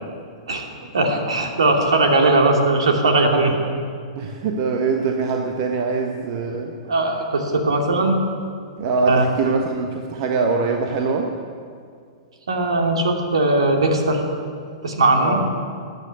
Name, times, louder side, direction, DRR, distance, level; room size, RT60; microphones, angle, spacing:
voice 1, 0.9-3.5 6.8-8.2 9.1-9.6 12.5-14.2 14.8-15.4, right 2 dB, 70° right, 2 dB, 2.4 m, -19 dB
voice 2, 4.1-6.8 8.8-11.3 15.2-15.5, right 4 dB, 45° right, 2 dB, 1.3 m, -23 dB
13.5 x 9.5 x 8.5 m, 2.2 s
figure-of-eight pair, 105°, 3 cm